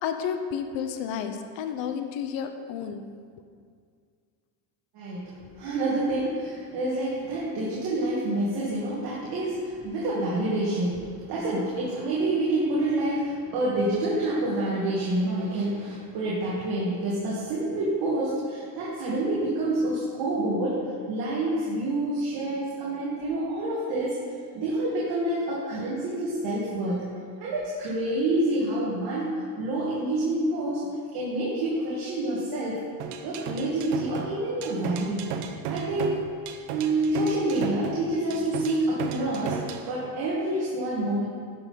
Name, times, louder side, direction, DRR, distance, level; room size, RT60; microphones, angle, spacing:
voice 1, 0.0-3.1, left 7 dB, 65° left, 7 dB, 1.0 m, -31 dB
voice 2, 4.9-24.2 24.5-27.1 27.4-32.8 33.2-35.3 35.7-36.3 36.7-41.2, right 1 dB, 50° right, -7 dB, 2.1 m, -28 dB
sound 1, 33.0-39.9, right 7 dB, 85° right, 1.0 m, -34 dB
11.0 x 5.8 x 5.7 m, 2.1 s
cardioid pair, 165°, 48 cm